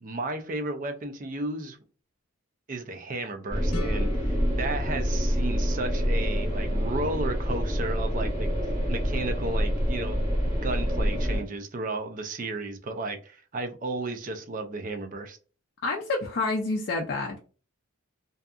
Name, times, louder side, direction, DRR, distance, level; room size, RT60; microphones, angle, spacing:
voice 1, 0.0-1.8 2.7-8.5 8.9-15.4, right 2 dB, 40° right, 0.4 m, -33 dB
sound 1, 3.5-11.4, equal, 20° right, 1.3 m, -27 dB
sound 2, 3.7-6.6, left 4 dB, 85° left, 0.7 m, -41 dB
voice 2, 15.8-17.4, left 3 dB, 45° left, 0.4 m, -28 dB
2.7 x 2.4 x 2.3 m
head